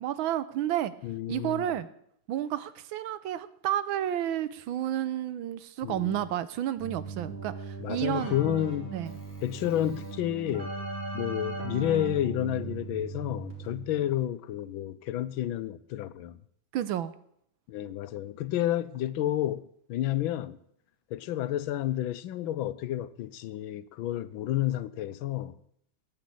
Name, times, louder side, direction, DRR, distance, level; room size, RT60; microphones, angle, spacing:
voice 1, 0.0-0.9 1.3-1.9 2.3-8.3 8.9-9.1 16.7-17.1, right 11 dB, 75° right, 1.4 m, -31 dB
voice 2, 1.0-1.7 5.8-6.2 7.8-9.0 9.4-10.7 11.1-16.4 17.7-20.6 21.1-25.5, left 12 dB, 75° left, 1.4 m, -30 dB
Keyboard (musical), 6.8-14.0, right 3 dB, 30° right, 3.2 m, -38 dB
10.0 x 8.7 x 8.4 m
omnidirectional pair, 2.3 m